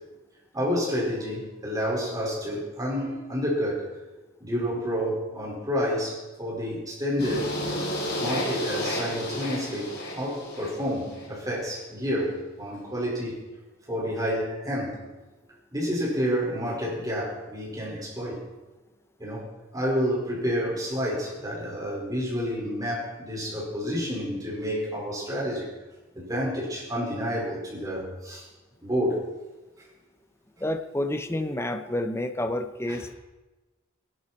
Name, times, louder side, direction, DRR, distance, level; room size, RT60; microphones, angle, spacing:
voice 1, 0.5-3.8 4.4-7.5 8.2-13.4 13.9-15.0 15.7-18.4 19.2-19.5 19.7-25.7 26.1-28.4 28.8-29.2 32.9-33.0, equal, 20° right, -4 dB, 5.0 m, -29 dB
sound 1, 7.2-11.3, equal, 55° left, 4.3 m, -32 dB
voice 2, 30.6-33.2, left 1 dB, 15° left, 7 dB, 0.7 m, -29 dB
20.0 x 11.5 x 4.3 m, 1.1 s
head